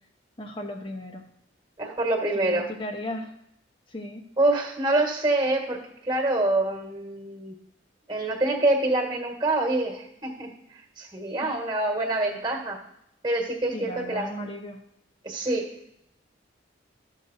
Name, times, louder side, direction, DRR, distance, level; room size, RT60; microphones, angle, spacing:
voice 1, 0.4-1.2 2.3-3.3 3.9-4.2 11.4-11.5 13.7-14.8, left 1 dB, 25° left, 3 dB, 0.9 m, -36 dB
voice 2, 1.8-2.7 4.4-7.5 8.1-10.5 11.0-12.8 13.2-14.3 15.2-15.7, right 2 dB, 25° right, 1 dB, 1.5 m, -26 dB
13.5 x 6.5 x 2.7 m, 0.76 s
head